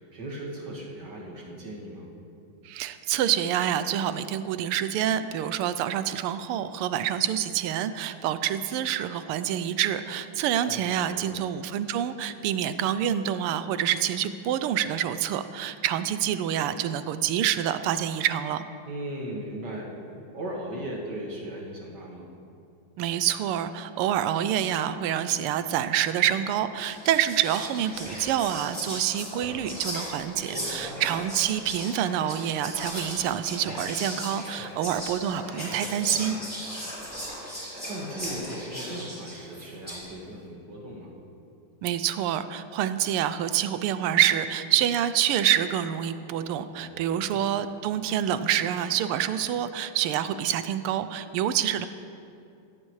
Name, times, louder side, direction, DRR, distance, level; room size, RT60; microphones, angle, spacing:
voice 1, 0.0-2.1 10.6-11.3 18.9-19.9 20.3-22.3 30.3-31.0 35.5-36.4 37.3-41.1 46.6-47.5, right 1 dB, 50° right, -2 dB, 2.4 m, -38 dB
voice 2, 2.6-18.7 23.0-36.4 41.8-51.9, right 10 dB, 85° right, 12 dB, 1.5 m, -27 dB
Whispering, 26.2-26.4 26.8-40.1, equal, 5° right, 3.4 m, -37 dB
17.5 x 14.0 x 3.2 m, 2.5 s
omnidirectional pair, 2.4 m